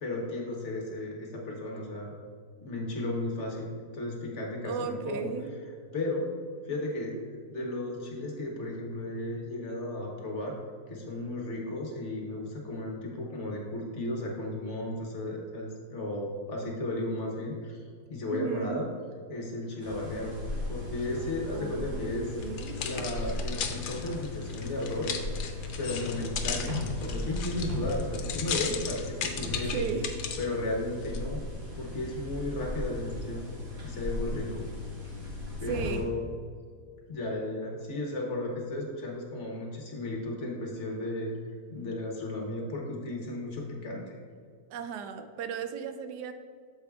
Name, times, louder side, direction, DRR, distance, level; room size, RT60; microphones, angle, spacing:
voice 1, 0.0-2.1 2.6-5.3 5.9-6.3 6.6-10.6 10.9-17.8 18.1-18.9 19.3-20.4 20.7-22.3 22.8-25.1 25.8-29.9 30.4-31.4 31.7-33.4 33.8-34.7 35.6-36.3 37.1-41.3 41.7-44.2, left 1 dB, 50° left, -1 dB, 1.2 m, -34 dB
voice 2, 4.6-5.5 18.3-18.8 21.5-22.8 29.7-30.1 35.7-36.1 44.7-46.3, right 6 dB, 85° right, 8 dB, 1.2 m, -35 dB
sound 1, 19.8-36.0, left 2 dB, 40° right, 1.7 m, -37 dB
sound 2, 22.4-30.5 31.0-31.2, left 7 dB, 80° left, 1.2 m, -36 dB
8.5 x 7.0 x 2.3 m, 2.1 s
omnidirectional pair, 1.8 m